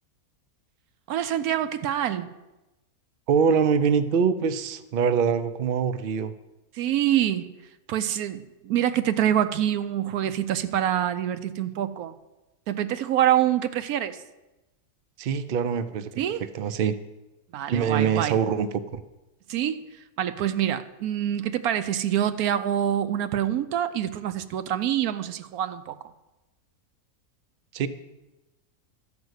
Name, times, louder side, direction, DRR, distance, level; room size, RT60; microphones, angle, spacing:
voice 1, 1.1-2.3 6.7-7.5 7.9-12.1 12.7-14.2 16.2-16.4 17.5-18.4 19.5-19.8 20.2-26.0, right 11 dB, 80° right, 11 dB, 1.0 m, -26 dB
voice 2, 3.3-6.3 15.2-16.2 16.5-16.9 17.7-19.0 27.7-27.9, right 6 dB, 60° right, 12 dB, 0.6 m, -24 dB
12.5 x 5.2 x 8.0 m, 1.0 s
omnidirectional pair, 1.6 m